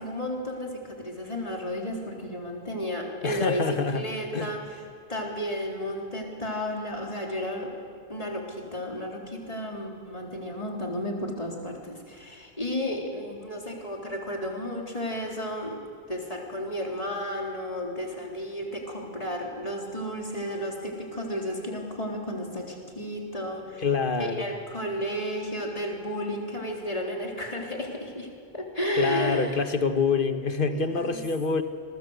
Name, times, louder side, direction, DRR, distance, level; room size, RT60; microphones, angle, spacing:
voice 1, 0.0-3.7 3.9-4.6 5.1-7.7 8.1-15.8 16.1-23.8 24.4-29.5 30.7-31.2, equal, 35° left, -1 dB, 3.9 m, -33 dB
voice 2, 3.2-4.1 4.3-4.5 23.8-24.5 28.9-31.6, left 4 dB, 60° left, 8 dB, 1.6 m, -26 dB
27.0 x 21.0 x 8.1 m, 2.2 s
omnidirectional pair, 1.0 m